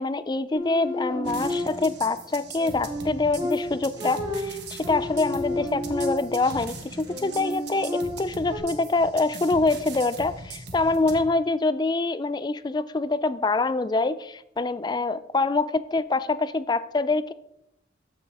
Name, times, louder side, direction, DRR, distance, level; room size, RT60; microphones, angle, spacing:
voice 1, 0.0-17.3, left 3 dB, 20° left, 14 dB, 0.3 m, -25 dB
sound 1, 0.5-2.0 2.6-6.6 7.1-8.6, left 1 dB, 20° right, 2.0 m, -31 dB
sound 2, 1.2-11.2, right 3 dB, 55° right, 1.3 m, -40 dB
14.0 x 6.1 x 3.6 m, 0.82 s
head